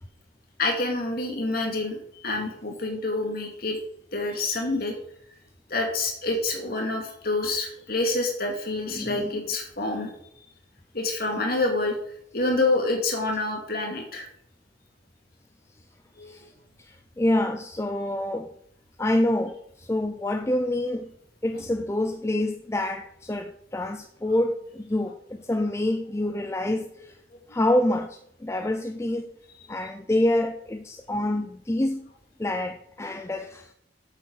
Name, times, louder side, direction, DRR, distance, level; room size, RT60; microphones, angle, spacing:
voice 1, 0.6-3.8 4.1-5.0 5.7-10.1 10.9-12.0 12.3-14.3 16.2-16.4 27.5-27.6, left 2 dB, 50° left, 2.5 m, -27 dB
voice 2, 8.9-9.3 16.2-16.5 16.8-18.6 19.0-21.1 21.4-27.2 27.5-29.3 29.7-32.1 32.4-33.7, left 1 dB, 15° left, 0.4 m, -27 dB
8.2 x 8.2 x 6.5 m
head